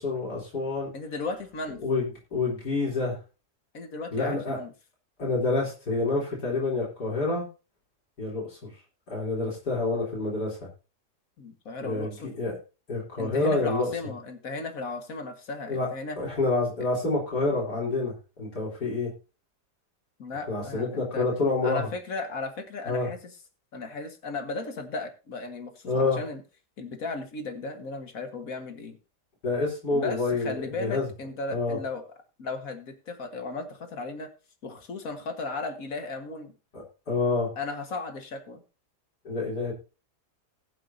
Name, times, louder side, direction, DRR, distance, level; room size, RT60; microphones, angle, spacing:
voice 1, 0.0-0.9 1.8-3.2 4.1-4.6 5.2-7.5 8.2-8.6 9.1-10.6 11.8-12.6 12.9-13.9 15.7-15.9 16.2-19.1 20.5-21.9 22.9-23.1 25.9-26.2 29.4-30.5 30.8-31.1 31.5-31.8 36.7-37.5 39.2-39.7, left 3 dB, 80° left, -3 dB, 4.0 m, -27 dB
voice 2, 0.9-1.8 3.7-4.7 11.4-12.3 13.2-16.2 20.2-21.3 21.6-23.2 23.7-26.4 26.8-29.0 29.9-32.0 32.4-34.3 34.6-36.5 37.6-38.6, left 3 dB, 60° left, 7 dB, 1.9 m, -35 dB
20.5 x 7.6 x 2.7 m, 0.31 s
omnidirectional pair, 1.7 m